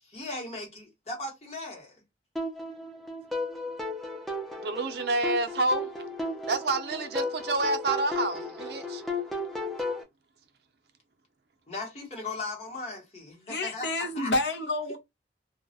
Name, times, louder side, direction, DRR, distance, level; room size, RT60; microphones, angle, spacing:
voice 1, 0.1-1.9 11.7-13.9 14.1-14.3, left 2 dB, 35° left, 1.0 m, -37 dB
sound 1, 2.4-10.0, left 2 dB, ahead, 0.4 m, -34 dB
voice 2, 4.6-5.9 6.5-9.0, right 2 dB, 60° right, 0.5 m, -28 dB
voice 3, 13.4-15.0, left 2 dB, 70° left, 0.7 m, -29 dB
2.2 x 2.0 x 2.7 m
head